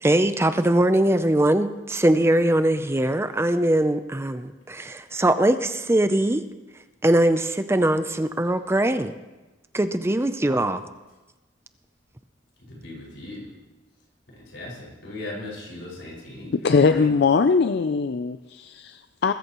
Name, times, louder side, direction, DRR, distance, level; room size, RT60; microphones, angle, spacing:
voice 1, 0.0-6.4 7.0-9.1 9.7-10.8, right 1 dB, 15° right, 10 dB, 0.5 m, -21 dB
voice 2, 12.7-13.4 14.4-17.1, left 2 dB, 90° left, -4 dB, 5.5 m, -38 dB
voice 3, 16.5-19.3, left 4 dB, 60° left, 10 dB, 0.4 m, -21 dB
21.5 x 13.5 x 3.0 m, 1.1 s
head